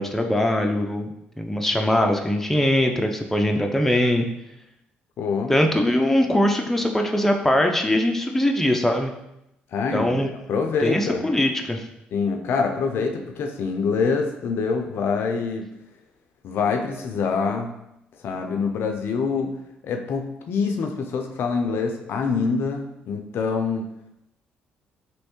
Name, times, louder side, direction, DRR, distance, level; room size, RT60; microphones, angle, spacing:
voice 1, 0.0-4.3 5.5-9.1 9.9-10.3 10.8-11.8, left 1 dB, 5° left, 3 dB, 0.5 m, -21 dB
voice 2, 5.2-5.5 9.7-10.1 10.5-11.3 12.1-15.7 16.4-17.7 18.2-19.5 19.8-23.9, left 5 dB, 65° left, 4 dB, 0.4 m, -25 dB
3.1 x 3.1 x 3.0 m, 0.83 s
supercardioid pair, 60°, 4 cm